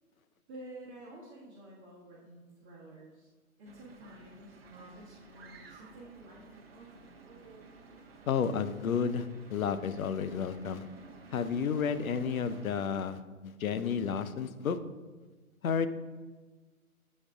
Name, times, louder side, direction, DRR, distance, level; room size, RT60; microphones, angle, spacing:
voice 1, 0.5-3.3 3.6-7.1, right 1 dB, 20° right, -7 dB, 1.1 m, -51 dB
sound 1, 3.6-12.8, right 4 dB, 45° right, 0.7 m, -53 dB
voice 2, 8.3-10.9 11.3-14.8 15.6-15.9, left 6 dB, 70° left, 12 dB, 0.6 m, -31 dB
7.3 x 4.8 x 3.5 m, 1.3 s
figure-of-eight pair, 140°, 44 cm